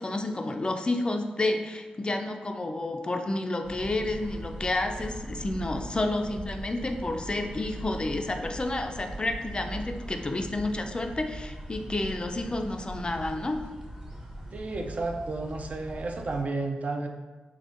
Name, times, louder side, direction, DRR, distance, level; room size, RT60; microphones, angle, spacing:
voice 1, 0.0-13.6, left 2 dB, 30° left, 5 dB, 0.3 m, -30 dB
sound 1, 3.6-16.4, right 1 dB, 20° right, 0.7 m, -40 dB
voice 2, 14.5-17.1, right 3 dB, 55° right, 3 dB, 0.3 m, -32 dB
3.5 x 2.2 x 2.5 m, 1.3 s
cardioid pair, 45°, 3 cm